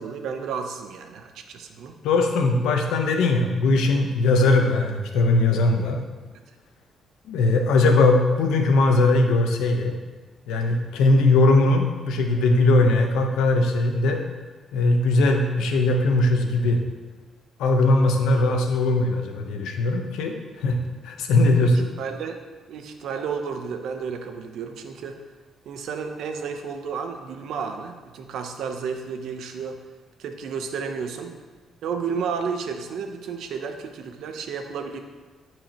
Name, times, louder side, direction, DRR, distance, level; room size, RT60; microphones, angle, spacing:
voice 1, 0.0-2.0 21.6-21.7 22.0-22.4 22.7-25.2 25.6-29.8 30.2-31.4 31.8-35.0, right 6 dB, 75° right, 5 dB, 0.8 m, -32 dB
voice 2, 2.0-6.0 7.3-9.9 10.5-14.2 14.7-16.8 17.6-20.8 21.0-21.9, left 2 dB, 90° left, 3 dB, 1.0 m, -20 dB
14.0 x 4.7 x 3.0 m, 1.3 s
cardioid pair, 90°, 0 cm